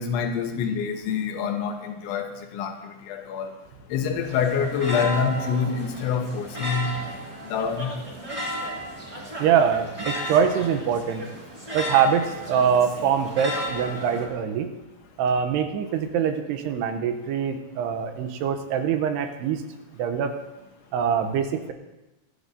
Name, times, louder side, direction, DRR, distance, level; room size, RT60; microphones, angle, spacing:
voice 1, 0.0-2.7 3.1-3.6 3.9-6.9 7.5-7.9, left 6 dB, 80° left, 4 dB, 3.3 m, -26 dB
sound 1, 4.2-14.3, equal, 35° right, 0.5 m, -34 dB
voice 2, 9.4-11.2 11.7-14.7 15.2-19.6 20.0-20.4 20.9-21.7, right 7 dB, 75° right, 7 dB, 2.5 m, -24 dB
24.0 x 12.5 x 2.7 m, 1.0 s
omnidirectional pair, 5.5 m